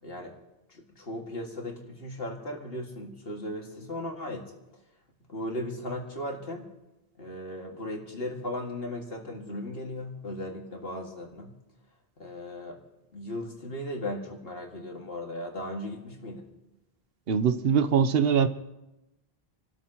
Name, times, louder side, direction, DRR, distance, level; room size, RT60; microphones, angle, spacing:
voice 1, 0.0-0.3 0.7-4.5 5.3-6.7 7.2-11.6 12.2-12.8 13.1-16.5, left 1 dB, 70° left, 1 dB, 2.3 m, -37 dB
voice 2, 17.3-18.5, right 7 dB, 70° right, 11 dB, 0.9 m, -22 dB
28.0 x 13.0 x 3.0 m, 0.97 s
omnidirectional pair, 1.1 m